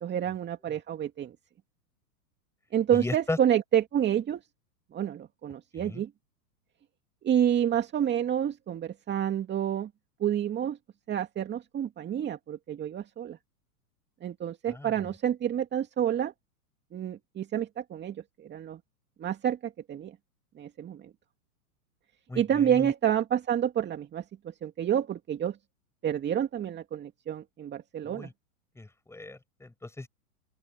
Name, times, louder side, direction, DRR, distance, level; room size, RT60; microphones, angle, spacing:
voice 1, 0.0-1.4 2.7-4.4 4.9-6.1 7.2-9.9 10.2-10.8 11.1-13.4 14.2-16.3 16.9-18.8 19.2-20.2 20.6-21.1 22.3-25.6 26.0-28.3, right 10 dB, 25° right, 2.4 m, -29 dB
voice 2, 2.9-3.4 5.7-6.0 14.7-15.1 22.3-22.9 28.0-28.3 28.7-30.1, left 2 dB, 5° left, 6.6 m, -37 dB
open air
hypercardioid pair, 115°, 45 cm